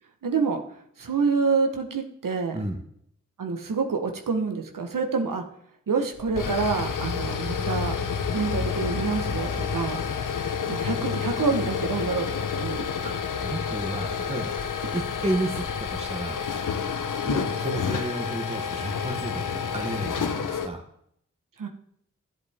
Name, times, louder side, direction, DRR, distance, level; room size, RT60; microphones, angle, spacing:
voice 1, 0.2-0.6 1.0-2.6 3.4-5.4 5.9-7.9 8.3-10.0 10.7-12.3 12.5-12.9 21.6-21.7, right 4 dB, 90° right, 4 dB, 1.2 m, -27 dB
sound 1, 6.2-20.7, left 6 dB, 75° left, 0.8 m, -29 dB
voice 2, 13.4-14.6 14.9-16.5 17.2-20.8, right 2 dB, 20° right, 2 dB, 1.3 m, -32 dB
12.5 x 7.9 x 3.6 m, 0.70 s
cardioid pair, 40°, 32 cm